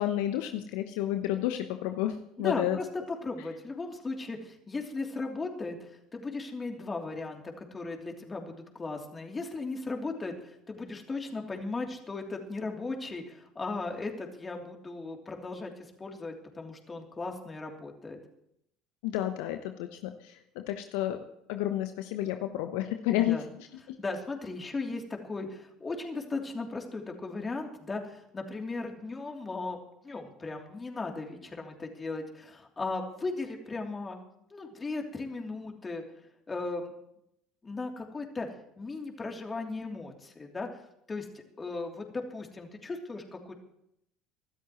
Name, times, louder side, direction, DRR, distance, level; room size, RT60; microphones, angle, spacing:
voice 1, 0.0-2.8 19.0-21.2 21.5-23.4, left 13 dB, 70° left, 7 dB, 0.9 m, -31 dB
voice 2, 2.4-18.2 23.1-23.5 24.0-29.8 30.0-34.2 34.5-36.0 36.5-36.9 37.6-38.5 38.8-40.7 41.1-41.3 41.6-43.5, left 3 dB, 25° left, 1 dB, 3.1 m, -37 dB
25.0 x 13.0 x 3.1 m, 0.77 s
hypercardioid pair, 70°, 0 cm